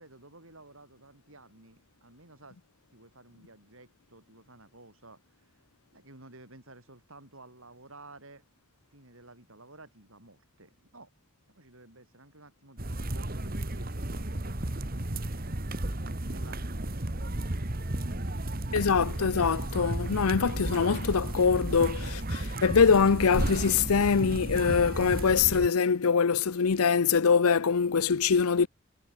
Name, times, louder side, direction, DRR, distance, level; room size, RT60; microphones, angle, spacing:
voice 1, 0.0-2.6 2.9-5.2 5.9-8.4 8.9-11.1 11.5-15.4 16.2-17.6, right 2 dB, 65° right, 7.6 m, -53 dB
sound 1, 12.8-25.7, right 1 dB, 40° right, 1.7 m, -33 dB
voice 2, 18.7-28.7, left 5 dB, 80° left, 0.6 m, -24 dB
head